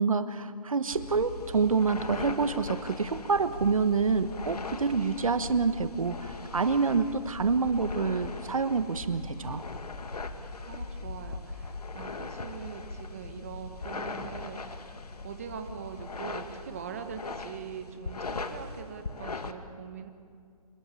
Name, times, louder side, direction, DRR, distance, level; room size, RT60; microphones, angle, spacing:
voice 1, 0.0-9.6, right 5 dB, 65° right, 12 dB, 1.3 m, -27 dB
sound 1, 0.9-19.5, left 3 dB, 90° left, 2.0 m, -40 dB
voice 2, 10.7-15.0 15.2-20.1, right 7 dB, 25° right, 6 dB, 1.4 m, -42 dB
27.0 x 20.0 x 8.4 m, 2.2 s
hypercardioid pair, 175°, 19 cm